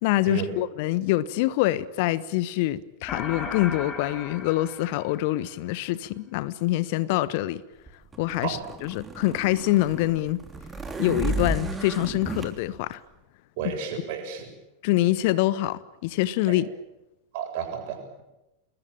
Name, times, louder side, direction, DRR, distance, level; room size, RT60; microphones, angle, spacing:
voice 1, 0.0-7.6 8.2-10.4 11.0-13.0 14.8-16.7, left 16 dB, 50° left, 1.2 m, -25 dB
sound 1, 3.1-5.7, left 4 dB, 25° left, 3.7 m, -37 dB
sound 2, 7.9-12.5, right 2 dB, 15° right, 3.3 m, -33 dB
voice 2, 13.6-14.5 17.3-18.2, right 7 dB, 50° right, 7.3 m, -32 dB
27.5 x 21.0 x 8.9 m
figure-of-eight pair, 90°, 0 cm